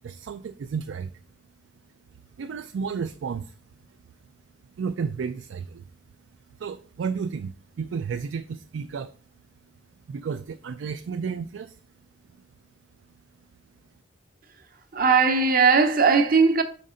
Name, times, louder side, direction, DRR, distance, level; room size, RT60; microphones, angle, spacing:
voice 1, 0.0-1.1 2.4-3.5 4.8-5.8 6.6-9.1 10.1-11.8, right 6 dB, 85° right, 0.4 m, -32 dB
voice 2, 14.9-16.6, right 5 dB, 50° right, 0.7 m, -18 dB
5.4 x 5.3 x 3.7 m
head